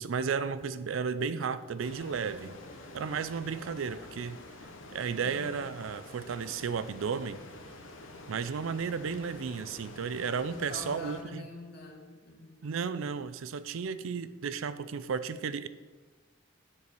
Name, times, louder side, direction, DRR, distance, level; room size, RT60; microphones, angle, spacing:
voice 1, 0.0-2.6 2.9-4.4 4.9-7.4 8.3-11.5 12.6-15.7, right 6 dB, 70° right, 14 dB, 0.4 m, -33 dB
sound 1, 1.0-7.9, left 1 dB, 85° left, 1.2 m, -57 dB
sound 2, 1.8-11.2, left 2 dB, 70° left, 1.0 m, -48 dB
voice 2, 5.2-5.6 10.5-12.6, left 2 dB, 50° left, -1 dB, 2.0 m, -45 dB
8.2 x 4.7 x 6.8 m, 1.3 s
head